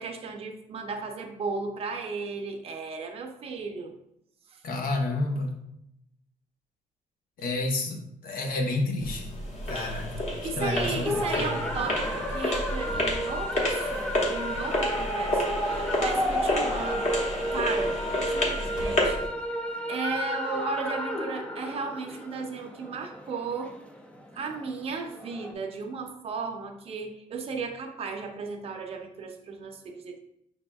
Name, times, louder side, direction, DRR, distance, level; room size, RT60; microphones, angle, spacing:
voice 1, 0.0-3.9 4.5-4.6 10.4-17.1 17.5-18.0 18.3-19.3 19.9-23.7 24.3-30.2, right 4 dB, 40° right, 4 dB, 0.6 m, -35 dB
voice 2, 4.6-5.6 7.4-9.3 9.7-11.5, left 2 dB, 75° left, 2 dB, 0.8 m, -30 dB
sound 1, 9.0-19.3, left 1 dB, 50° left, 1.0 m, -30 dB
sound 2, 11.0-25.5, equal, 10° left, 0.3 m, -32 dB
5.8 x 3.5 x 2.3 m, 0.79 s
cardioid pair, 150°, 15 cm